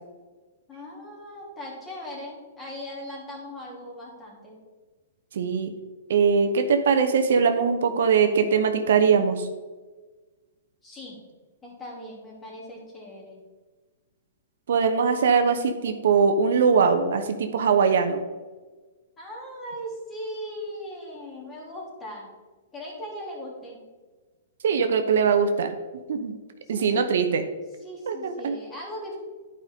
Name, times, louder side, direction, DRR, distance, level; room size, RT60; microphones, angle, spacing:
voice 1, 0.7-4.6 10.8-11.2 11.6-13.4 19.2-22.3 22.7-23.8 26.6-27.3 27.8-29.2, equal, 15° left, -3 dB, 2.8 m, -39 dB
voice 2, 5.3-5.7 6.1-9.5 14.7-18.2 24.6-25.7 26.1-26.3 26.7-27.4 28.1-28.2 28.4-28.6, right 6 dB, 70° right, 7 dB, 0.9 m, -21 dB
11.0 x 5.3 x 3.6 m, 1.3 s
hypercardioid pair, 145°, 0 cm